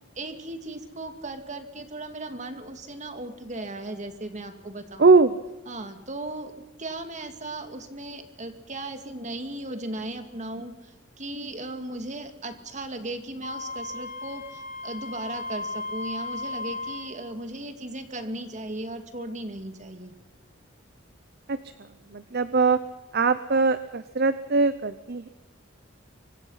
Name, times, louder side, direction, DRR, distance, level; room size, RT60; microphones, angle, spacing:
voice 1, 0.2-5.0 5.7-20.2, right 2 dB, 35° right, 8 dB, 2.4 m, -37 dB
voice 2, 5.0-5.4 21.5-21.6 22.1-22.8 23.1-25.3, right 4 dB, 55° right, 13 dB, 0.8 m, -21 dB
Wind instrument woodwind instrument, 13.4-17.1, left 3 dB, 45° left, 2.9 m, -35 dB
24.5 x 24.5 x 5.8 m, 1.1 s
head